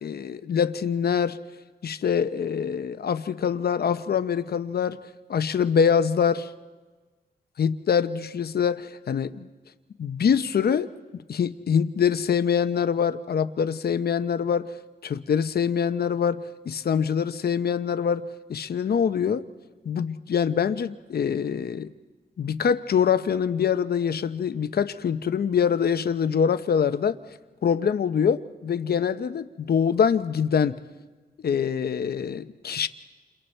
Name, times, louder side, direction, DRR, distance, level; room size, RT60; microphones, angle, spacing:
voice 1, 0.0-1.4 1.8-5.0 5.3-6.5 7.6-9.5 10.0-10.9 11.3-14.7 15.0-19.4 19.8-21.9 22.4-27.2 27.6-30.8 31.4-32.9, left 7 dB, 75° left, 10 dB, 0.9 m, -24 dB
29.5 x 27.5 x 4.5 m, 1.3 s
cardioid pair, 75°, 16 cm